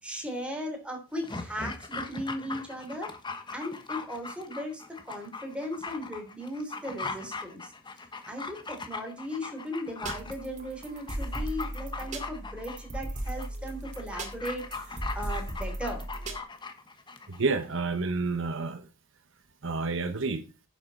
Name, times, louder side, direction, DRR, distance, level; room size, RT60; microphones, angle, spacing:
voice 1, 0.0-3.1 3.5-7.7 8.3-16.0, equal, 5° right, 3 dB, 3.3 m, -37 dB
Dog, 1.1-17.4 17.7-17.8, left 3 dB, 20° left, 1.2 m, -40 dB
sound 1, 10.0-16.4, right 1 dB, 35° right, 2.3 m, -37 dB
voice 2, 17.3-18.9 19.6-20.5, right 3 dB, 65° right, 9 dB, 1.0 m, -29 dB
10.5 x 7.5 x 4.2 m, 0.29 s
head